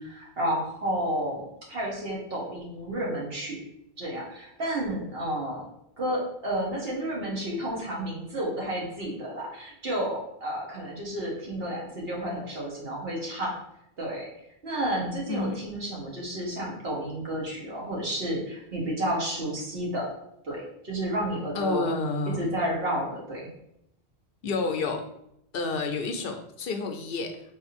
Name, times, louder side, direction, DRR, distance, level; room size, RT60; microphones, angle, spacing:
voice 1, 0.0-3.6 4.0-5.7 6.0-13.5 14.0-14.3 14.6-20.1 20.4-21.9 22.4-23.4, right 1 dB, 70° right, -3 dB, 1.4 m, -31 dB
voice 2, 21.5-22.5 24.4-25.0 25.5-27.4, left 3 dB, 70° left, 5 dB, 0.7 m, -29 dB
3.5 x 2.5 x 4.1 m, 0.77 s
omnidirectional pair, 1.0 m